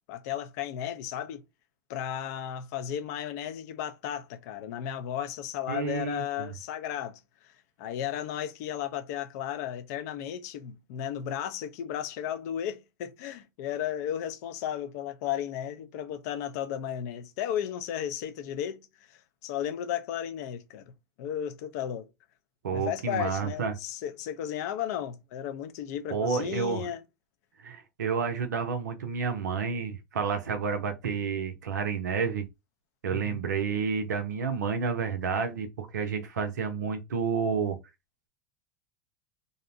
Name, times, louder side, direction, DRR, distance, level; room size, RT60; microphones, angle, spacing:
voice 1, 0.1-1.4 1.9-7.5 7.8-18.8 19.1-20.9 21.2-22.1 22.7-27.0 33.1-33.4, left 10 dB, 65° left, 0.5 m, -34 dB
voice 2, 5.7-6.5 22.6-23.7 26.1-26.9 27.6-32.4 33.0-37.8, right 6 dB, 85° right, 0.5 m, -30 dB
2.6 x 2.0 x 2.6 m
hypercardioid pair, 85°, 9 cm